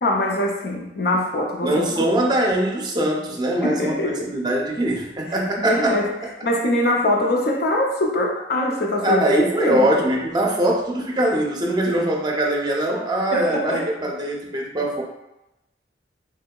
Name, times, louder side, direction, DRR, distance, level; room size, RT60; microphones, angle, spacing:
voice 1, 0.0-2.0 3.6-4.2 5.6-6.1 6.4-9.9 13.3-13.8, left 1 dB, 60° left, -1 dB, 0.5 m, -23 dB
voice 2, 1.6-6.0 9.0-15.0, right 1 dB, 25° right, -1 dB, 0.5 m, -22 dB
3.8 x 2.7 x 2.2 m, 0.92 s
head